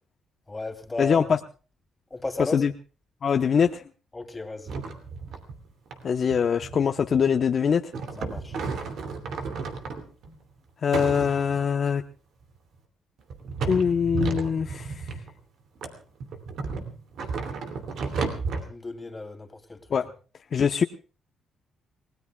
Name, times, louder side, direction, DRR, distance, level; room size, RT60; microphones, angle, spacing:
voice 1, 0.5-1.3 2.1-2.6 4.1-4.7 8.2-8.6 18.7-19.8, left 2 dB, 20° left, 5 dB, 2.9 m, -34 dB
voice 2, 1.0-1.4 2.4-2.7 3.2-3.8 6.0-7.9 10.8-12.0 13.7-15.0 19.9-20.1 20.5-20.8, left 7 dB, 50° left, 5 dB, 0.9 m, -23 dB
sound 1, 4.7-5.6 5.9-6.0 6.3-7.3 7.9-10.4 10.9-11.7 12.4-12.5 13.3-15.3 15.8-18.6, right 4 dB, 70° right, 2.8 m, -33 dB
29.5 x 18.0 x 2.3 m, 0.37 s
cardioid pair, 90°, 0 cm